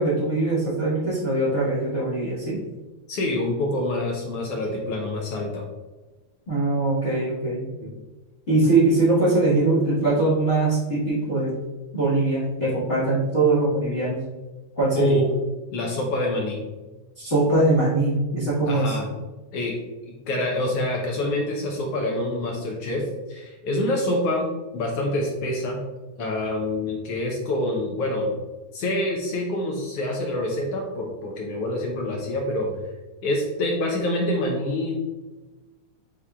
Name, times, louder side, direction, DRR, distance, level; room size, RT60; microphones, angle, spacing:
voice 1, 0.0-2.6 6.5-7.9 8.5-11.5 11.9-14.2 14.8-15.2 17.2-19.0, right 2 dB, 55° left, -11 dB, 0.7 m, -22 dB
voice 2, 3.1-5.6 14.9-15.3 15.7-16.6 18.7-19.1 19.5-19.7 20.1-23.0 23.3-24.5 24.7-25.8 26.2-28.3 28.7-32.8 33.2-34.9, left 1 dB, 80° left, -1 dB, 1.3 m, -26 dB
5.9 x 3.6 x 2.3 m, 1.2 s
omnidirectional pair, 3.4 m